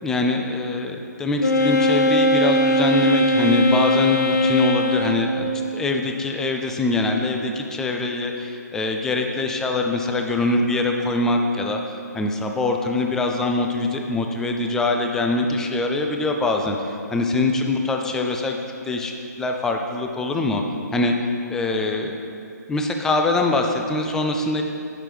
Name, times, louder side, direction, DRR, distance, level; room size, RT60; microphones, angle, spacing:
voice 1, 0.0-11.8 12.1-18.6 18.9-20.6 20.9-21.2 21.5-22.2 22.7-24.6, left 2 dB, 5° left, 3 dB, 0.3 m, -23 dB
Wind instrument woodwind instrument, 1.4-5.5, equal, 80° left, 0.6 m, -20 dB
8.9 x 6.1 x 3.2 m, 2.5 s
figure-of-eight pair, 140°, 10 cm